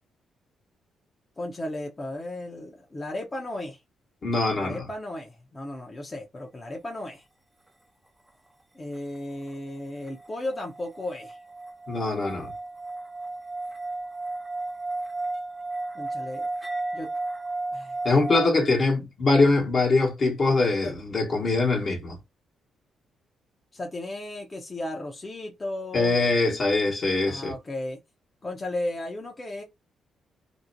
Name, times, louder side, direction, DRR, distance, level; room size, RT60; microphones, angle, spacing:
voice 1, 1.4-3.8 4.5-7.2 8.7-11.4 15.9-16.5 16.9-17.1 17.7-18.0 20.8-20.9 23.7-26.2 27.2-28.0 28.4-29.6, left 1 dB, 30° left, 0.6 m, -35 dB
voice 2, 4.2-4.9 11.9-12.5 18.0-22.2 25.9-27.5, left 3 dB, 55° left, 1.1 m, -23 dB
sound 1, 10.1-18.5, right 2 dB, 15° right, 0.4 m, -34 dB
2.6 x 2.1 x 2.6 m
supercardioid pair, 55°, 0 cm